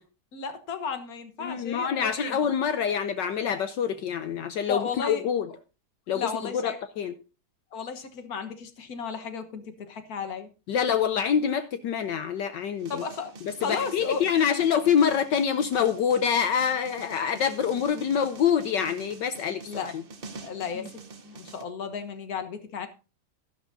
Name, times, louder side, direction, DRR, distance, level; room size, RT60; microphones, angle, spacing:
voice 1, 0.3-2.5 4.7-5.2 6.1-6.8 7.7-10.5 12.9-13.3 13.6-14.2 19.7-19.9 20.4-21.0 21.2-22.9, left 6 dB, 50° left, 1.5 m, -34 dB
voice 2, 1.4-5.5 6.1-7.1 10.7-13.0 13.7-20.0 20.8-20.9, left 7 dB, 70° left, 1.2 m, -26 dB
sound 1, 12.8-21.6, right 4 dB, 55° right, 0.6 m, -46 dB
12.0 x 11.5 x 2.6 m
omnidirectional pair, 2.4 m